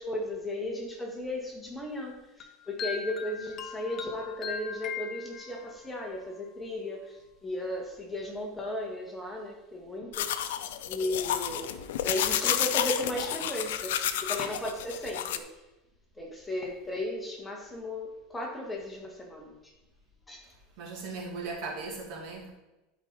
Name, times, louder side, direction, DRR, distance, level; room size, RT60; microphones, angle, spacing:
voice 1, 0.0-10.5 10.9-13.9 14.2-15.4 16.2-19.7 20.3-20.4, left 1 dB, 10° left, 0 dB, 1.7 m, -35 dB
sound 1, 2.4-5.9, left 6 dB, 40° left, 0.8 m, -39 dB
sound 2, 10.1-15.4, left 11 dB, 90° left, 0.6 m, -31 dB
voice 2, 20.8-22.5, right 3 dB, 60° right, -1 dB, 2.4 m, -38 dB
12.0 x 5.1 x 4.0 m, 1.0 s
supercardioid pair, 135°, 0 cm